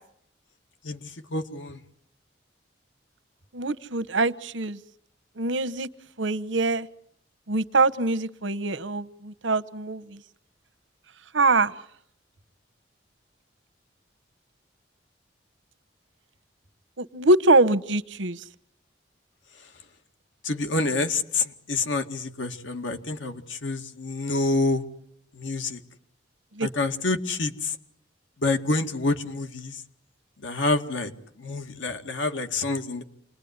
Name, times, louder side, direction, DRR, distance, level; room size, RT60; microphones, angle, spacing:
voice 1, 0.8-1.8 20.4-24.8 25.3-25.8 26.6-27.8 28.4-29.8 30.4-31.1 31.4-33.0, left 3 dB, 90° left, 6 dB, 2.1 m, -27 dB
voice 2, 3.5-4.8 5.4-5.9 6.2-6.9 7.5-10.2 11.3-11.7 17.0-18.4 26.6-26.7, right 2 dB, 90° right, 13 dB, 1.1 m, -23 dB
28.5 x 21.0 x 9.6 m, 0.72 s
head